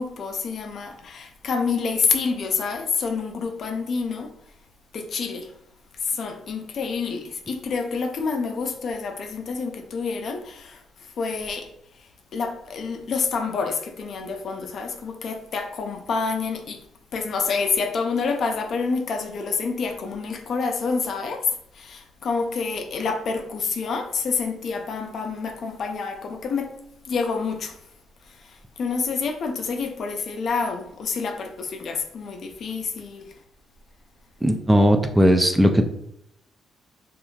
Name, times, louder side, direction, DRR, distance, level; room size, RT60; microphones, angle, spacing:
voice 1, 0.0-4.3 4.9-5.5 5.9-16.8 17.1-26.8 27.0-27.8 28.2-33.3, left 5 dB, 60° left, 0.4 m, -28 dB
voice 2, 34.4-35.9, equal, 10° right, 0.3 m, -17 dB
3.0 x 2.5 x 2.3 m
cardioid pair, 90°, 0 cm